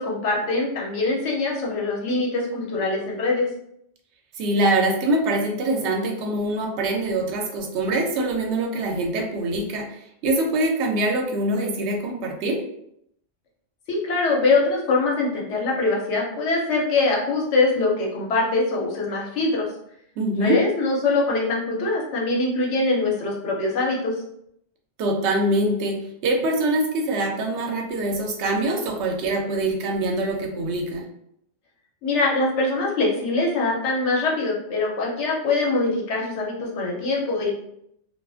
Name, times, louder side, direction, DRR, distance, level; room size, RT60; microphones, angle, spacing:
voice 1, 0.0-3.5 13.9-19.7 20.4-24.2 32.0-37.5, left 3 dB, 70° left, -2 dB, 1.0 m, -23 dB
voice 2, 4.4-12.6 20.2-20.6 25.0-31.1, right 1 dB, 70° right, 2 dB, 0.8 m, -24 dB
2.4 x 2.4 x 2.3 m, 0.74 s
omnidirectional pair, 1.3 m